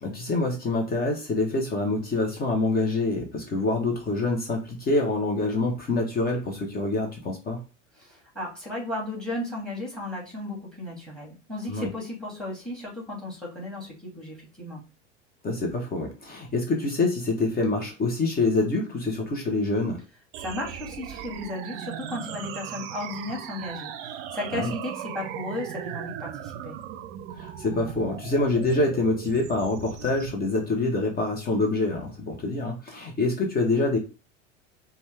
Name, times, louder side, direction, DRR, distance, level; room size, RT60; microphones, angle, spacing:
voice 1, 0.0-7.6 11.7-11.9 15.4-20.0 24.5-24.7 27.3-34.0, left 2 dB, 25° left, 2 dB, 0.9 m, -26 dB
voice 2, 8.0-14.8 20.4-26.8, left 1 dB, ahead, -2 dB, 2.3 m, -35 dB
sound 1, 20.3-30.3, right 10 dB, 50° right, 0.6 m, -38 dB
5.1 x 2.3 x 3.3 m, 0.32 s
figure-of-eight pair, 85°, 37 cm